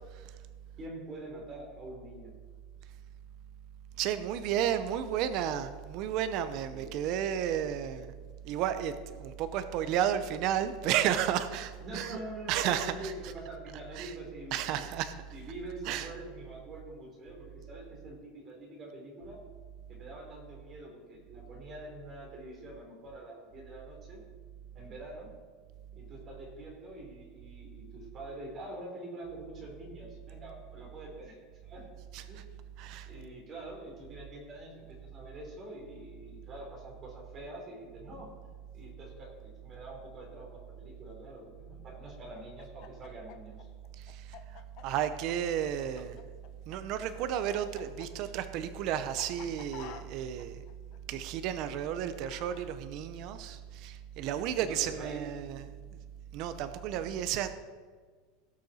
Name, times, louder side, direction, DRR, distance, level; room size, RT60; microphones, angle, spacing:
voice 1, 0.7-2.4 6.7-6.9 11.8-14.9 15.3-19.4 19.9-24.2 24.7-25.3 25.9-31.9 32.3-38.3 38.7-43.7 54.4-55.2, right 1 dB, 25° right, -1 dB, 3.4 m, -45 dB
voice 2, 4.0-8.1 8.4-12.2 12.5-13.1 14.0-14.1 14.5-15.1 15.9-16.1 32.1-32.2 32.8-33.1 44.0-46.2 46.7-50.6 51.1-55.6 56.3-57.5, right 10 dB, 45° right, 11 dB, 0.6 m, -32 dB
Chicken rooster, 42.3-46.8 47.0-52.6, left 12 dB, 45° left, 0.8 m, -50 dB
17.5 x 6.7 x 4.2 m, 1.5 s
supercardioid pair, 165°, 0 cm